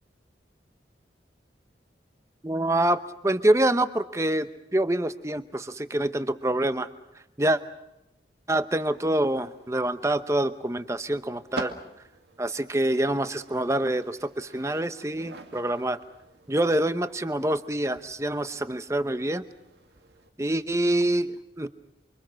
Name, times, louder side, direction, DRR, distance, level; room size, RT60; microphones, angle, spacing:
voice 1, 2.4-6.9 7.4-7.6 8.5-11.7 12.4-16.0 16.5-19.4 20.4-21.7, right 1 dB, 15° right, 11 dB, 0.9 m, -26 dB
sound 1, 8.8-20.3, right 2 dB, 70° right, 2.2 m, -46 dB
28.5 x 24.0 x 6.4 m, 0.92 s
head